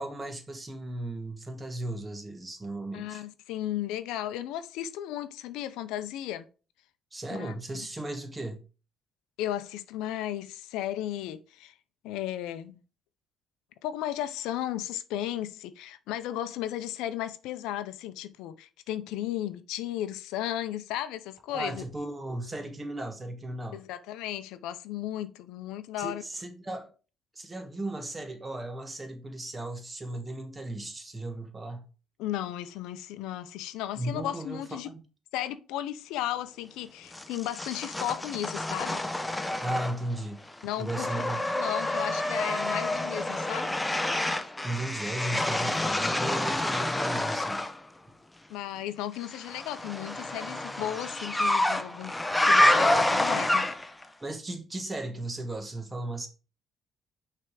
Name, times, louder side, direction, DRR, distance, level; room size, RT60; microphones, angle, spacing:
voice 1, 0.0-3.2 7.1-8.6 21.5-23.8 26.0-26.9 27.3-31.9 33.9-34.6 39.6-40.4 40.8-41.5 44.6-47.7 54.2-56.3, right 1 dB, 20° right, 1.3 m, -36 dB
voice 2, 2.9-6.4 7.3-7.5 9.4-11.7 12.0-12.8 13.8-21.8 23.7-26.2 32.2-34.9 35.3-39.0 40.6-41.3 41.5-43.7 48.5-52.2 52.5-53.7, left 12 dB, 90° left, 0.5 m, -35 dB
sound 1, 37.1-40.2 40.5-47.8 49.3-54.0, left 1 dB, 10° left, 0.7 m, -28 dB
5.9 x 3.4 x 4.7 m
cardioid pair, 100°, 0 cm